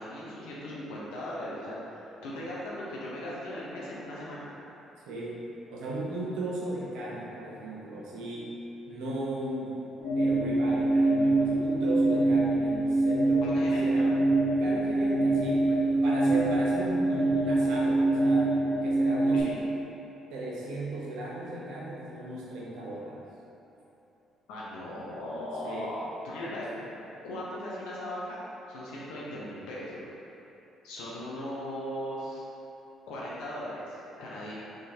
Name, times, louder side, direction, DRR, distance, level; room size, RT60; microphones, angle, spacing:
voice 1, 0.0-4.5 13.4-14.1 19.3-19.6 24.5-26.7 27.2-28.4 28.7-30.1 30.8-32.4 33.1-34.5, left 1 dB, 90° left, -6 dB, 0.8 m, -38 dB
voice 2, 5.1-5.4 5.7-8.5 8.9-9.8 10.2-14.1 14.6-18.5 18.8-19.5 20.3-23.2 25.6-25.9 26.7-26.8, right 1 dB, 80° right, -5 dB, 0.9 m, -36 dB
sound 1, 10.0-19.4, right 2 dB, 60° left, 1.4 m, -25 dB
3.8 x 3.1 x 4.3 m, 2.9 s
cardioid pair, 80°, 0 cm